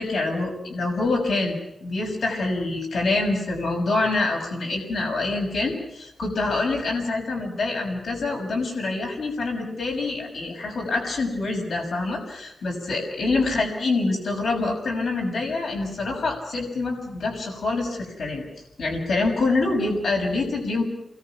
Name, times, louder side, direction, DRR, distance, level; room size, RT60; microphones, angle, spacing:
voice 1, 0.0-18.5 18.8-20.8, left 3 dB, 75° left, 2 dB, 6.3 m, -26 dB
29.0 x 22.0 x 6.0 m, 0.87 s
wide cardioid pair, 145°, 0 cm